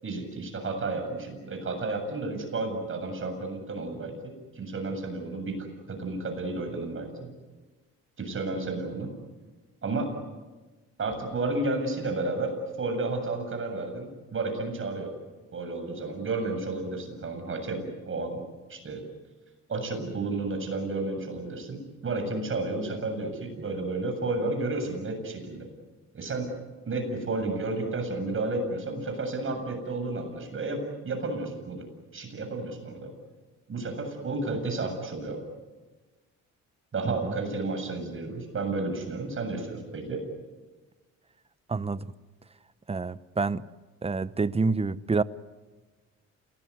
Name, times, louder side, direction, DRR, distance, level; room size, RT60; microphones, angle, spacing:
voice 1, 0.0-7.3 8.2-9.1 9.8-10.1 11.0-15.1 15.5-18.4 18.7-19.0 19.7-25.7 26.1-26.5 26.9-31.9 32.1-33.1 33.7-35.4 36.9-40.2, right 2 dB, 45° right, 7.6 m, -32 dB
voice 2, 41.7-42.1 42.9-43.6 44.0-45.2, right 4 dB, 20° right, 0.9 m, -28 dB
27.5 x 19.0 x 9.6 m
cardioid pair, 90°, 30 cm